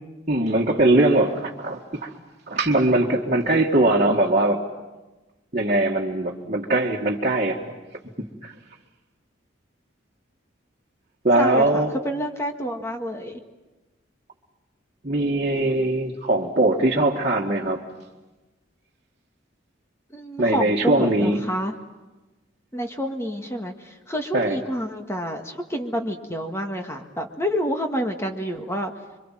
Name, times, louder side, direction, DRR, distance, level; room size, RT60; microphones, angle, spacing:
voice 1, 0.3-2.1 2.5-4.6 5.5-7.6 8.2-8.5 11.2-12.0 15.0-17.8 20.4-21.4 24.3-24.6, right 2 dB, 40° right, -5 dB, 2.0 m, -21 dB
voice 2, 11.4-13.4 20.1-21.7 22.7-28.9, equal, 15° left, 4 dB, 1.8 m, -28 dB
27.0 x 24.5 x 7.6 m, 1.1 s
head